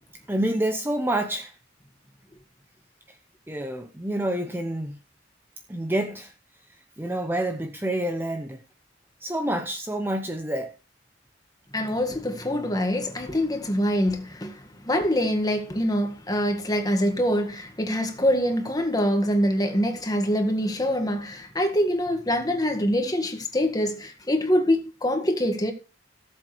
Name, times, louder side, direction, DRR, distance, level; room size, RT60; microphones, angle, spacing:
voice 1, 0.3-1.5 3.5-5.0 5.7-6.3 7.0-8.6 9.2-10.7, right 1 dB, 10° right, 0.8 m, -28 dB
voice 2, 11.7-25.7, equal, 20° left, 1.7 m, -24 dB
18.0 x 7.6 x 3.3 m
head